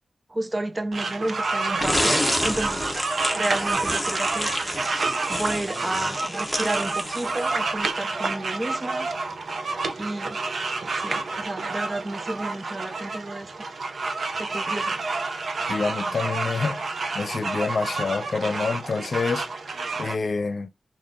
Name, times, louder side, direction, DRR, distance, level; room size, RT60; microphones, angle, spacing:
voice 1, 0.3-2.9 3.3-4.5 5.3-9.1 10.0-10.4 10.9-13.5 14.4-15.0, right 1 dB, 25° right, 0.4 m, -31 dB
sound 1, 0.9-20.1, right 3 dB, 65° right, 0.6 m, -29 dB
sound 2, 1.8-7.7, left 1 dB, 5° left, 0.9 m, -29 dB
voice 2, 15.7-19.5 20.0-20.7, left 4 dB, 55° left, 0.6 m, -27 dB
3.4 x 2.5 x 3.7 m
wide cardioid pair, 135°, 0 cm